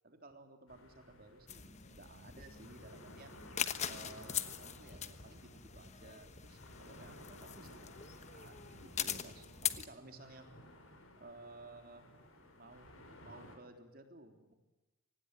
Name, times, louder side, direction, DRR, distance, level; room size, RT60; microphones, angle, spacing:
voice 1, 0.0-3.3 3.9-10.5 11.2-12.1 12.6-14.5, right 2 dB, 45° right, 6 dB, 3.6 m, -56 dB
sound 1, 0.7-13.6, left 1 dB, 75° left, 6.8 m, -57 dB
sound 2, 1.5-9.9, left 9 dB, 30° left, 1.2 m, -42 dB
25.0 x 19.0 x 9.0 m, 1.1 s
head